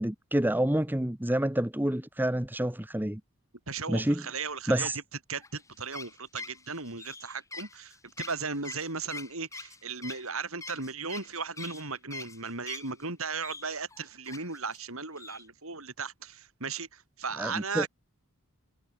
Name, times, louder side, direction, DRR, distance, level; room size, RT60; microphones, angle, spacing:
voice 1, 0.0-3.2 3.9-4.2 4.7-5.0 17.4-17.9, right 1 dB, 10° right, 1.0 m, -28 dB
voice 2, 3.7-4.9 5.3-17.9, right 4 dB, 65° right, 4.9 m, -36 dB
sound 1, 5.4-13.0 13.4-14.8 15.2-15.5, left 3 dB, 15° left, 2.8 m, -44 dB
head